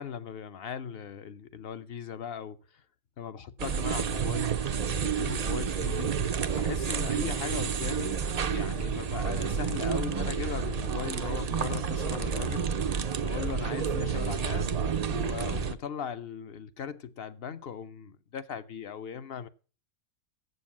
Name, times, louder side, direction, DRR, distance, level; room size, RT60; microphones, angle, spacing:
voice 1, 0.0-2.8 3.2-4.6 4.9-6.2 6.6-12.7 13.2-14.7 15.1-19.5, left 7 dB, 60° left, 0.7 m, -38 dB
sound 1, 3.6-15.7, right 6 dB, 85° right, 0.3 m, -30 dB
sound 2, 8.2-13.7, left 5 dB, 90° left, 1.7 m, -50 dB
7.8 x 7.4 x 7.2 m
omnidirectional pair, 1.5 m